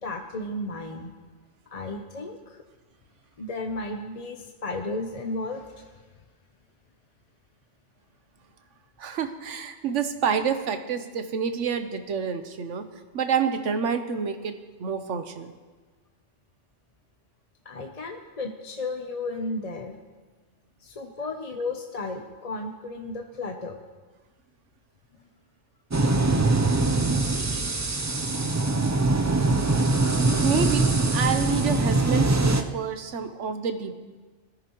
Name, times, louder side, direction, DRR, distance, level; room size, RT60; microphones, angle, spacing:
voice 1, 0.0-1.1 1.7-2.6 3.4-6.0 17.6-19.9 20.8-23.8, left 2 dB, 35° left, 3 dB, 0.7 m, -34 dB
voice 2, 9.0-12.9 13.1-14.5 14.8-15.5 27.4-27.7 30.4-33.9, right 6 dB, 85° right, 8 dB, 1.2 m, -28 dB
sound 1, 25.9-32.6, right 2 dB, 25° right, 0.4 m, -23 dB
19.5 x 14.0 x 3.1 m, 1.3 s
omnidirectional pair, 1.2 m